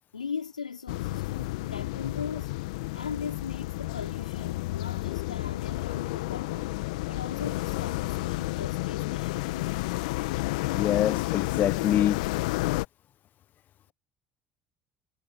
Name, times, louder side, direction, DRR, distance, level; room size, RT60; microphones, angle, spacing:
voice 1, 0.1-2.5 2.9-6.7 7.1-9.8, left 6 dB, 90° left, 4.5 m, -39 dB
sound 1, 0.9-12.9, left 21 dB, 75° left, 1.8 m, -31 dB
voice 2, 10.7-12.2, left 11 dB, 50° left, 1.2 m, -25 dB
hypercardioid pair, 60°, 4 cm